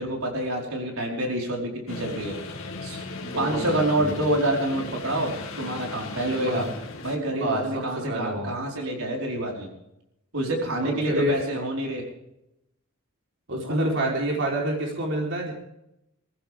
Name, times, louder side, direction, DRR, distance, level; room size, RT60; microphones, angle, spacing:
voice 1, 0.0-2.4 2.8-3.0 3.4-6.7 7.0-9.7 10.3-12.0 13.7-13.8, right 1 dB, 85° right, -1 dB, 4.8 m, -27 dB
sound 1, 1.9-7.2, left 3 dB, 70° left, 2.5 m, -37 dB
voice 2, 3.1-4.2 6.3-6.7 7.3-8.6 10.8-11.3 13.5-15.5, right 1 dB, 55° right, -2 dB, 4.1 m, -28 dB
22.5 x 15.0 x 3.6 m, 0.83 s
head